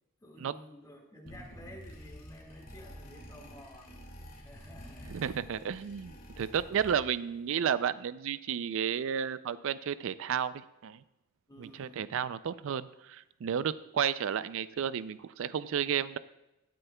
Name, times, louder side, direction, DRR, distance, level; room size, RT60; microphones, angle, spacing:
voice 1, 0.2-4.1 4.3-5.2 11.5-12.1, left 1 dB, 15° left, 0 dB, 1.8 m, -52 dB
sound 1, 1.3-7.3, equal, 45° left, 2.0 m, -49 dB
voice 2, 5.1-11.0 11.6-16.2, right 8 dB, 65° right, 16 dB, 0.4 m, -32 dB
17.0 x 9.1 x 2.2 m, 0.94 s
head